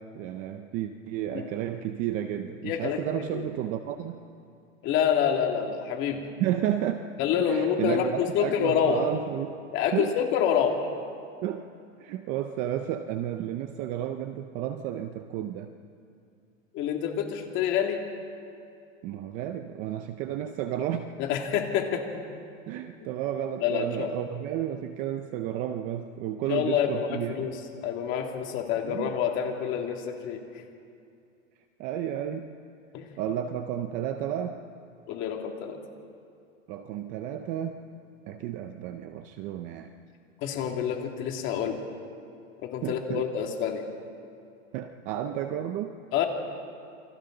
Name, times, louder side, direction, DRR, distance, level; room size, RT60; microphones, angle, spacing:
voice 1, 0.0-4.2 6.4-7.0 7.5-9.6 9.9-10.2 11.4-11.7 12.0-15.7 19.0-21.1 22.7-27.3 28.8-29.1 31.8-32.6 33.2-34.6 36.7-37.8 38.3-39.9 42.8-43.3 44.7-45.9, right 11 dB, 20° right, 8 dB, 0.5 m, -32 dB
voice 2, 2.6-3.0 3.3-3.5 4.8-6.2 7.2-9.0 9.7-10.8 16.7-18.0 21.2-22.0 23.6-24.1 26.5-27.6 27.8-30.4 32.9-33.1 35.1-35.8 40.4-41.8 42.6-43.8 46.1-46.3, left 8 dB, 30° left, 2 dB, 2.5 m, -27 dB
28.5 x 25.0 x 3.9 m, 2.5 s
supercardioid pair, 155°, 38 cm